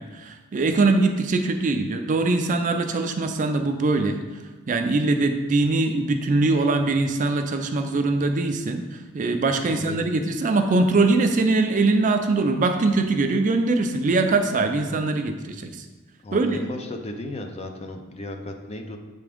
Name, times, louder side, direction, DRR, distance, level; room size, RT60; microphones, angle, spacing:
voice 1, 0.0-4.2 4.7-15.7 16.3-16.6, right 3 dB, 35° right, 6 dB, 0.4 m, -22 dB
voice 2, 16.2-19.0, left 1 dB, 30° left, 5 dB, 0.5 m, -35 dB
7.6 x 3.5 x 3.5 m, 1.3 s
head